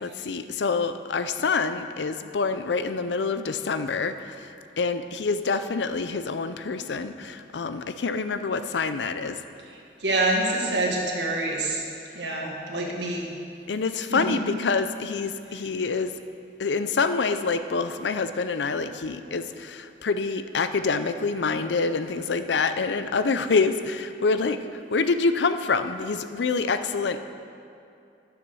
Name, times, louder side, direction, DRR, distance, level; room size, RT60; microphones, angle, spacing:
voice 1, 0.0-4.4 4.8-9.4 13.7-16.1 16.6-24.6 24.9-27.2, left 4 dB, 85° left, 10 dB, 0.5 m, -26 dB
voice 2, 9.7-11.8 12.1-13.3 14.1-14.4, right 2 dB, 80° right, -1 dB, 1.6 m, -27 dB
10.0 x 7.1 x 6.2 m, 2.6 s
head